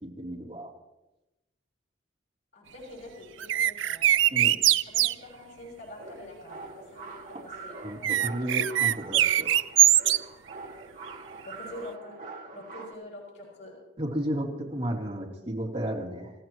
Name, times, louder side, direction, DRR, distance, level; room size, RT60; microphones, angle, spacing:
voice 1, 0.0-0.7 4.3-4.6 7.8-9.5 14.0-16.3, right 1 dB, 30° right, -3 dB, 3.2 m, -33 dB
voice 2, 2.5-4.1 4.8-7.8 11.4-12.1 12.5-13.8, left 1 dB, 80° left, -3 dB, 6.1 m, -45 dB
sound 1, 3.4-5.1 8.0-10.2, right 12 dB, 80° right, 0.4 m, -21 dB
sound 2, 5.9-12.9, right 3 dB, 45° right, 1.6 m, -44 dB
28.5 x 15.0 x 3.1 m, 0.97 s
head